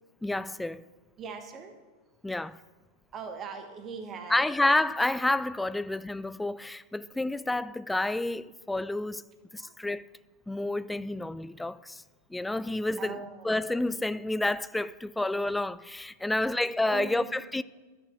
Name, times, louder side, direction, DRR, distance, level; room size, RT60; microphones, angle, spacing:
voice 1, 0.2-0.8 2.2-2.6 4.3-9.2 9.5-10.0 10.5-12.0 12.3-13.2 13.4-17.6, left 2 dB, 5° left, 0.4 m, -29 dB
voice 2, 1.2-1.8 3.1-4.4 9.6-9.8 13.0-13.6 16.4-16.5 16.8-17.3, right 5 dB, 30° right, 1.5 m, -40 dB
12.5 x 9.3 x 6.2 m
figure-of-eight pair, 90°, 0 cm